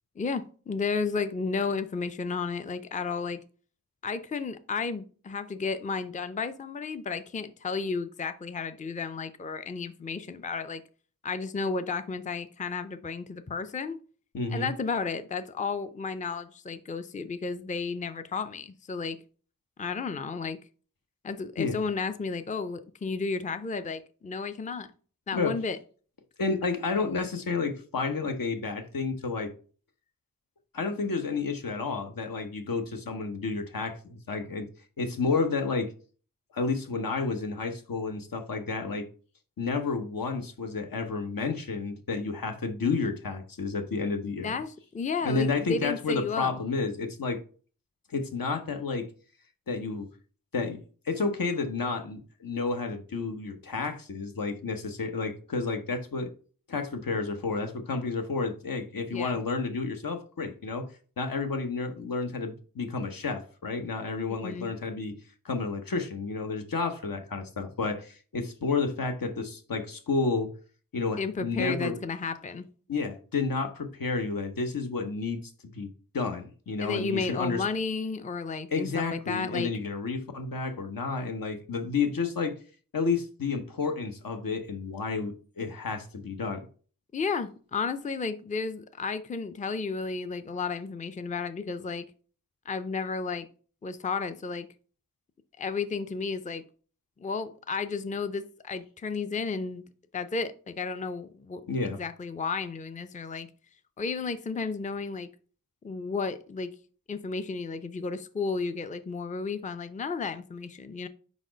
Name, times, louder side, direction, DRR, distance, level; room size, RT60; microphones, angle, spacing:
voice 1, 0.2-3.4 4.0-10.8 11.2-14.0 14.5-19.2 19.8-20.6 21.2-24.9 25.3-25.8 44.4-46.5 59.1-59.4 64.3-64.7 71.2-72.6 76.8-79.7 87.1-92.1 92.7-93.5 93.8-94.7 95.6-96.6 97.2-99.8 100.1-103.5 104.0-105.3 105.8-106.7 107.1-111.1, left 4 dB, 20° left, 0.4 m, -33 dB
voice 2, 14.3-14.7 21.6-21.8 25.3-25.5 26.4-29.5 30.7-34.7 35.0-35.9 36.5-39.1 39.6-44.6 45.2-47.4 48.1-49.1 49.7-50.1 50.5-50.8 51.0-56.3 56.7-60.9 61.2-65.1 65.4-70.5 70.9-72.0 72.9-77.6 78.7-82.5 82.9-86.7 101.7-102.0, left 4 dB, 75° left, 0.9 m, -31 dB
4.9 x 4.1 x 5.0 m
wide cardioid pair, 80°, 34 cm